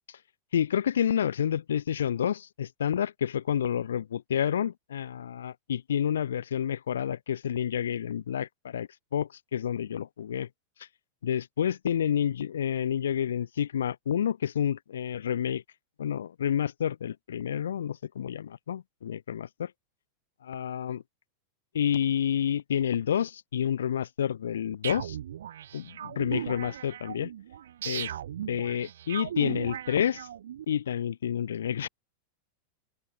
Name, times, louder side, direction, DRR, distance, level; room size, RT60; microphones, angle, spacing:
voice 1, 0.5-10.5 11.2-15.6 16.0-19.7 20.4-21.0 21.7-25.2 25.7-27.3 27.8-28.1 28.5-30.3 30.7-31.9, left 9 dB, 65° left, 0.6 m, -29 dB
sound 1, 24.8-30.6, right 10 dB, 60° right, 0.9 m, -37 dB
open air
figure-of-eight pair, 90°, 0 cm